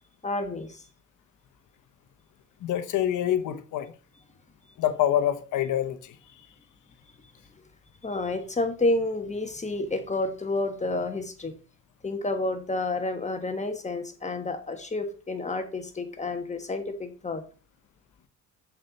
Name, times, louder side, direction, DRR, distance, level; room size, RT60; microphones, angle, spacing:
voice 1, 0.2-0.8 8.0-11.5 12.0-17.4, left 2 dB, 25° left, 1.5 m, -30 dB
voice 2, 2.6-3.9 4.8-6.2, left 11 dB, 80° left, 1.0 m, -26 dB
6.4 x 4.7 x 5.2 m
cardioid pair, 90°, 30 cm